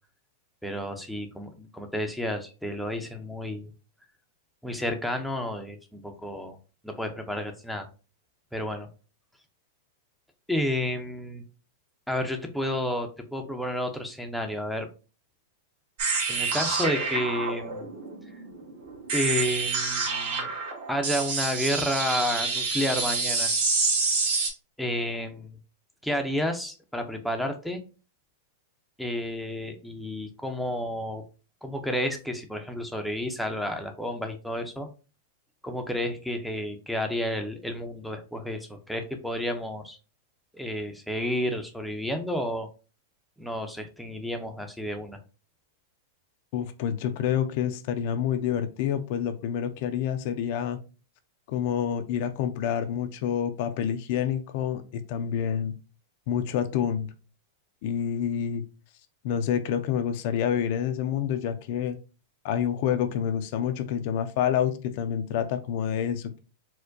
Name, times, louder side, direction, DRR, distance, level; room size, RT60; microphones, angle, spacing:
voice 1, 0.6-3.7 4.6-6.6 6.8-7.9 8.5-8.9 10.5-11.4 12.1-14.9 16.3-17.9 19.1-20.5 20.9-23.5 24.8-25.5 26.0-27.8 29.0-31.2 31.6-34.9 35.6-40.0 40.5-42.7 43.4-45.2, left 1 dB, ahead, 4 dB, 0.5 m, -31 dB
sound 1, 16.0-24.5, right 4 dB, 60° right, 1.4 m, -28 dB
voice 2, 46.5-50.8 51.5-55.7 56.3-57.1 57.8-58.6 59.2-62.0 62.4-66.4, left 9 dB, 55° left, 9 dB, 0.4 m, -28 dB
4.3 x 2.2 x 2.6 m, 0.34 s
hypercardioid pair, 130°, 0 cm